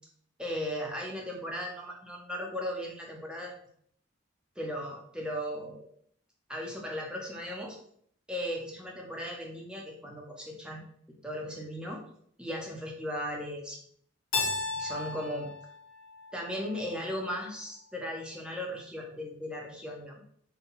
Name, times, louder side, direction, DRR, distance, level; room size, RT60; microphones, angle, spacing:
voice 1, 0.4-3.5 4.6-5.9 6.5-7.8 8.3-10.8 11.2-12.0 12.4-13.8 14.7-15.5 16.3-20.2, equal, 5° right, -1 dB, 0.5 m, -37 dB
Keyboard (musical), 14.3-17.1, left 3 dB, 90° left, 0.6 m, -35 dB
3.6 x 2.2 x 2.8 m, 0.64 s
head